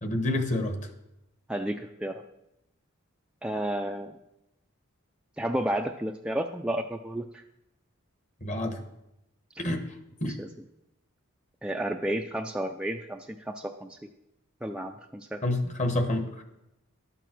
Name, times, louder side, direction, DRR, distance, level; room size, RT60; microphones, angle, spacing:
voice 1, 0.0-0.9 8.4-8.8 9.6-9.8 10.2-10.3 15.4-16.4, left 1 dB, 35° left, 6 dB, 1.1 m, -28 dB
voice 2, 1.5-2.2 3.4-4.2 5.4-7.4 9.5-9.7 10.2-10.5 11.6-14.0 14.6-15.4, right 1 dB, 5° right, 3 dB, 0.3 m, -32 dB
11.5 x 7.0 x 6.0 m, 0.88 s
head